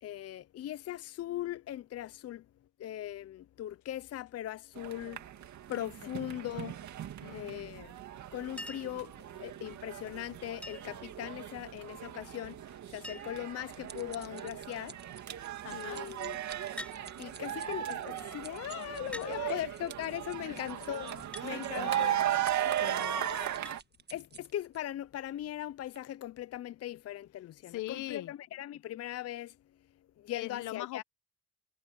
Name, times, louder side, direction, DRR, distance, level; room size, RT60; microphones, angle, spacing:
voice 1, 0.0-2.5 2.8-5.2 5.7-6.8 7.3-7.9 8.3-15.0 15.7-16.4 17.2-22.2 23.2-23.5 24.1-29.6 30.2-31.0, left 12 dB, 55° left, 0.6 m, -40 dB
sound 1, 4.8-23.8, right 11 dB, 70° right, 2.4 m, -37 dB
voice 2, 7.2-7.6 15.6-16.0 19.2-19.7 20.5-21.1 21.4-22.4 22.8-23.5 27.7-28.3 30.3-31.0, left 16 dB, 85° left, 1.0 m, -42 dB
Chink clink, 8.6-9.0 10.6-11.0 12.4-12.5 12.7-12.8 13.0-13.5 14.3-14.6 16.8-17.0 18.1-18.2 19.1-19.4 21.3-21.5 23.7-23.8 25.2-25.3, left 1 dB, 5° left, 4.6 m, -45 dB
sound 2, 13.1-24.8 25.4-25.6 26.0-26.1, right 6 dB, 35° right, 1.4 m, -53 dB
cardioid pair, 90°, 30 cm